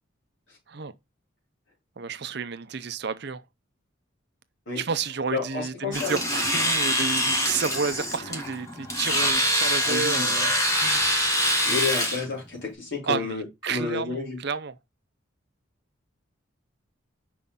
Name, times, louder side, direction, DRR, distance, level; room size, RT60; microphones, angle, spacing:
voice 1, 2.0-3.4 4.8-11.1 13.0-14.8, right 5 dB, 55° right, 0.6 m, -31 dB
voice 2, 5.3-6.2 9.8-10.3 11.6-14.4, left 4 dB, 65° left, 3.9 m, -31 dB
Domestic sounds home sounds, 5.9-12.2, equal, 15° left, 1.5 m, -24 dB
5.7 x 5.1 x 3.6 m
head